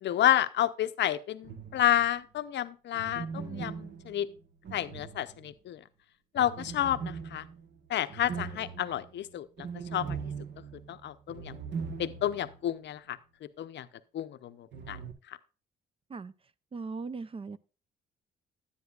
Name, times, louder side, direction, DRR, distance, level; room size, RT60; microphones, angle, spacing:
voice 1, 0.0-4.3 4.7-5.8 6.3-7.4 7.9-10.2 10.9-11.5 12.0-13.2 13.6-13.9 14.1-15.0 15.3-15.4, left 11 dB, 65° left, 0.6 m, -30 dB
sound 1, 1.4-2.2 2.9-5.7 6.4-12.6 12.9-13.0 14.7-15.1, right 6 dB, 60° right, 1.3 m, -40 dB
voice 2, 16.7-17.6, right 4 dB, 30° right, 0.4 m, -38 dB
10.0 x 9.6 x 2.4 m
cardioid pair, 90°, 20 cm